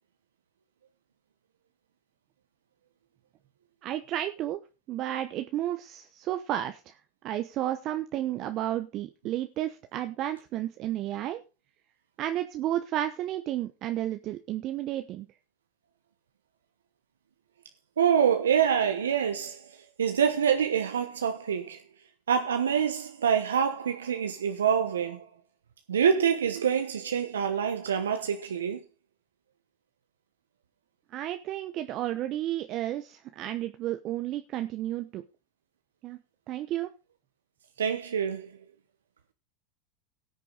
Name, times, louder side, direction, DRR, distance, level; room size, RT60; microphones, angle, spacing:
voice 1, 3.8-4.6 4.9-7.0 7.2-11.4 12.2-15.3 31.1-35.2 36.0-36.2 36.5-36.9, right 13 dB, 50° right, 0.9 m, -32 dB
voice 2, 18.0-21.8 22.3-25.3 25.9-28.8 37.8-38.6, right 8 dB, 85° right, 1.0 m, -26 dB
18.5 x 6.7 x 4.0 m
hypercardioid pair, 90°, 0 cm